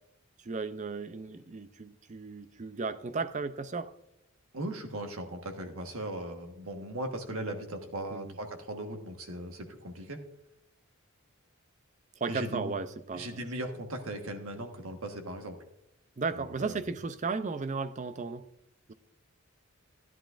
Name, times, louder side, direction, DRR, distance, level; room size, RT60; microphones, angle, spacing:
voice 1, 0.4-3.9 8.1-8.3 12.2-13.4 16.2-18.5, right 4 dB, 35° right, 0.5 m, -35 dB
voice 2, 4.5-10.2 12.3-12.7 13.1-15.6 16.3-16.8, right 1 dB, 70° right, 1.4 m, -38 dB
14.0 x 11.0 x 2.5 m
head